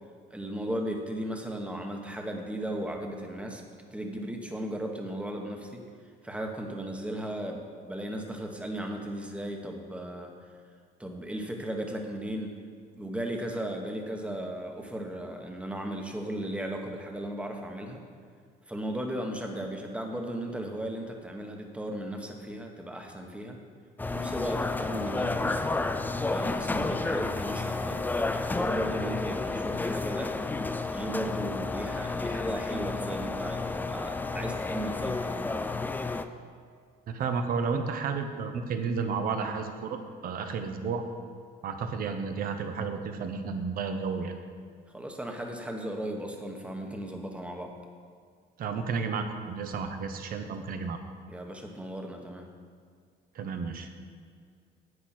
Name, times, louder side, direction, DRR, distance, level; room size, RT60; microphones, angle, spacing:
voice 1, 0.3-3.6 3.9-5.8 6.2-10.3 11.0-12.5 12.9-18.0 18.7-23.6 24.0-25.7 26.3-28.0 28.3-30.4 30.9-35.6 44.9-47.7 51.3-52.4, right 1 dB, 5° right, 2 dB, 1.2 m, -36 dB
sound 1, 24.0-36.2, left 3 dB, 10° left, 0.4 m, -31 dB
voice 2, 37.1-41.0 41.6-44.4 48.6-51.0 53.3-53.9, right 5 dB, 60° right, 7 dB, 1.1 m, -32 dB
11.0 x 8.3 x 4.4 m, 2.1 s
cardioid pair, 110°, 17 cm